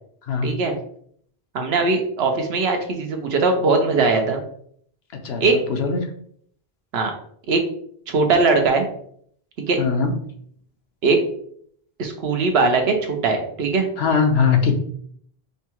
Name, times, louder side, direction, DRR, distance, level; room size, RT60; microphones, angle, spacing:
voice 1, 0.4-0.7 1.5-4.4 5.4-5.5 6.9-7.1 7.5-7.6 8.1-8.9 9.7-9.8 11.0-11.2 12.0-13.9, right 3 dB, 80° right, 4 dB, 1.0 m, -20 dB
voice 2, 5.7-6.0 9.8-10.1 14.0-14.7, left 5 dB, 80° left, 5 dB, 1.0 m, -20 dB
5.4 x 2.3 x 2.9 m, 0.63 s
omnidirectional pair, 1.0 m